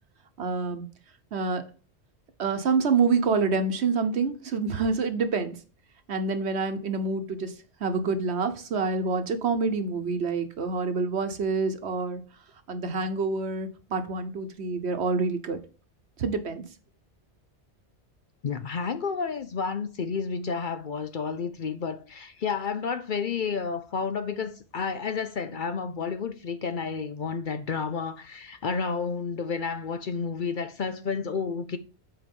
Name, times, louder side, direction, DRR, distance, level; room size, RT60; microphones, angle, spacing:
voice 1, 0.4-0.8 1.3-1.6 2.4-5.6 6.1-7.5 7.8-12.2 12.7-15.6 16.2-16.6, right 4 dB, 70° right, 1.2 m, -27 dB
voice 2, 18.4-31.8, left 5 dB, 55° left, 0.7 m, -31 dB
8.0 x 4.7 x 5.4 m
omnidirectional pair, 1.2 m